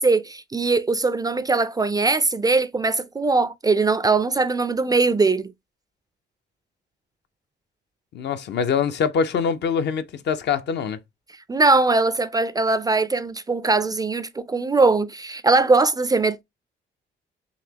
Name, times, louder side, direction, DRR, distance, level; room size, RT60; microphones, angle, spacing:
voice 1, 0.0-5.5 11.5-16.4, right 3 dB, 20° right, 0.3 m, -21 dB
voice 2, 8.1-11.0, left 6 dB, 60° left, 0.5 m, -24 dB
4.0 x 2.8 x 2.8 m
cardioid pair, 90°, 20 cm